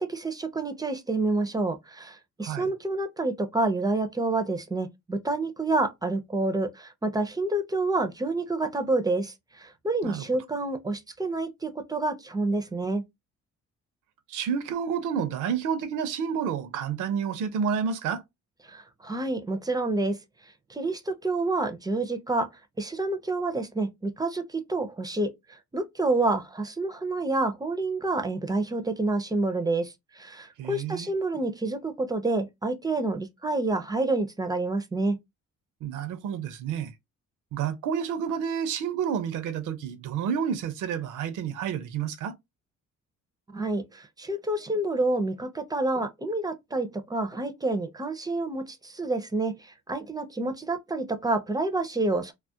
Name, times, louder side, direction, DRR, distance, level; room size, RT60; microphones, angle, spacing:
voice 1, 0.0-13.0 18.7-20.2 20.7-22.5 22.8-35.2 43.5-52.3, right 2 dB, 15° right, 0.4 m, -28 dB
voice 2, 14.3-18.2 30.6-31.1 35.8-36.9 37.5-42.3, right 7 dB, 85° right, 0.5 m, -30 dB
2.3 x 2.1 x 2.6 m
cardioid pair, 90°, 30 cm